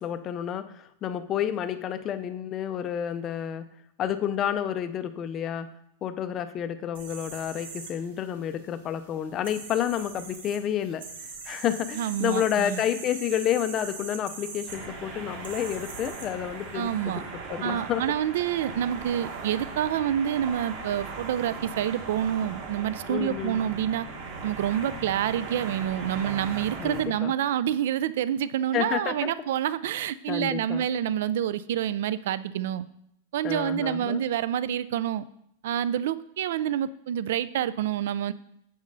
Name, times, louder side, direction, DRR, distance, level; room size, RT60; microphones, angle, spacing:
voice 1, 0.0-3.7 4.0-5.7 6.0-11.0 11.5-18.0 23.1-23.6 26.8-27.3 28.7-29.3 30.3-30.8 33.4-34.2, left 10 dB, 20° left, 11 dB, 0.4 m, -30 dB
sound 1, 6.9-16.9, right 5 dB, 80° right, 1.8 m, -43 dB
voice 2, 12.0-12.8 16.7-17.2 17.6-24.1 24.4-32.9 33.3-35.2 35.6-38.3, right 10 dB, 60° right, 17 dB, 0.4 m, -28 dB
sound 2, 14.7-27.0, right 4 dB, 40° right, 1.6 m, -38 dB
8.5 x 7.4 x 3.9 m, 0.76 s
supercardioid pair, 175°, 0 cm